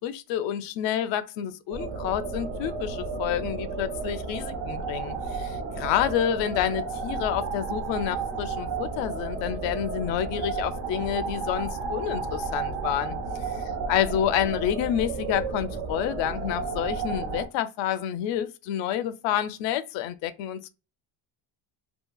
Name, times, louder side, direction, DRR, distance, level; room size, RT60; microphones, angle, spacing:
voice 1, 0.0-20.7, left 10 dB, 90° left, 0.5 m, -29 dB
sound 1, 1.7-17.5, right 4 dB, 85° right, 0.8 m, -32 dB
2.8 x 2.7 x 2.2 m
cardioid pair, 170°, 43 cm